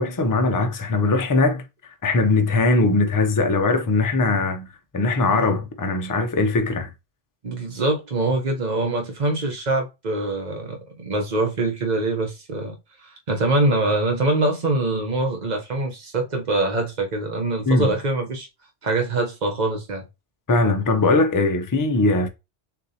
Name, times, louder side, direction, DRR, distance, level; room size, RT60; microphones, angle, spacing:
voice 1, 0.0-1.6 2.0-4.7 4.9-6.9 17.7-17.9 20.5-22.3, left 3 dB, 35° left, 0.3 m, -20 dB
voice 2, 7.4-12.8 13.0-18.5 18.8-20.1, right 2 dB, 40° right, 1.0 m, -24 dB
6.6 x 2.6 x 2.8 m
omnidirectional pair, 1.2 m